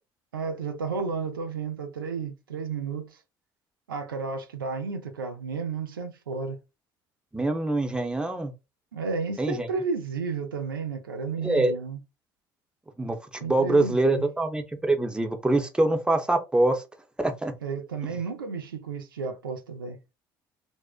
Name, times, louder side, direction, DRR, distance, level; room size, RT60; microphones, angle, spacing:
voice 1, 0.3-3.2 3.9-6.6 8.9-12.0 13.4-14.3 17.6-20.0, right 5 dB, 90° right, 0.4 m, -32 dB
voice 2, 7.3-8.5 9.4-9.7 11.4-11.7 13.0-16.8 17.2-17.5, right 2 dB, 10° right, 0.6 m, -24 dB
2.6 x 2.0 x 2.3 m
hypercardioid pair, 60°, 11 cm